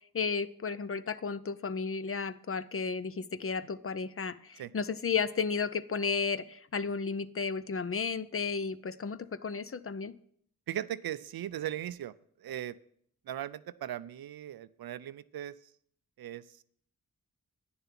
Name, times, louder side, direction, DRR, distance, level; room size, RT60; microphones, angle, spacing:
voice 1, 0.1-10.1, left 5 dB, 40° left, 15 dB, 0.6 m, -33 dB
voice 2, 10.7-12.1 12.4-12.7 13.3-15.5 16.2-16.4, right 11 dB, 85° right, 16 dB, 0.5 m, -38 dB
9.7 x 6.8 x 5.9 m, 0.64 s
cardioid pair, 50°, 35 cm